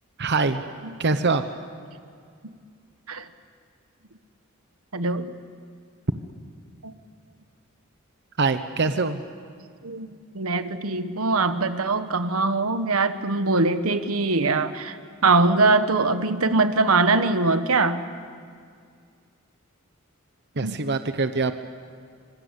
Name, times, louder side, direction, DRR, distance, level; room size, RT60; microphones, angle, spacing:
voice 1, 0.2-0.6 1.0-1.4 8.4-9.2 20.6-21.5, right 3 dB, 55° right, 9 dB, 1.0 m, -23 dB
voice 2, 4.9-5.3 6.8-6.9 9.8-10.1 10.3-15.0 15.2-18.0 20.6-20.8, right 3 dB, 85° right, 10 dB, 1.4 m, -22 dB
26.0 x 25.5 x 8.3 m, 2.2 s
head